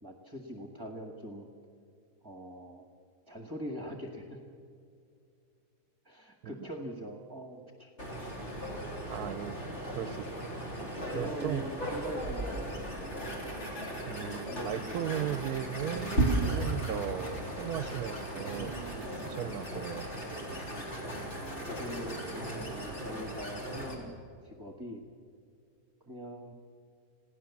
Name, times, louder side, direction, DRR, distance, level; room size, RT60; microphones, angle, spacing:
voice 1, 0.0-1.5 2.2-2.9 3.3-4.4 6.0-7.9 11.1-13.1 14.1-15.1 20.7-20.9 21.6-24.1 24.4-25.0 26.1-26.5, equal, 15° right, 3 dB, 1.6 m, -43 dB
sound 1, 8.0-24.0, right 1 dB, 45° left, 4.0 m, -36 dB
voice 2, 9.1-10.5 11.1-11.7 14.1-20.6, right 10 dB, 75° right, 14 dB, 1.2 m, -37 dB
27.5 x 16.0 x 7.2 m, 2.4 s
omnidirectional pair, 1.6 m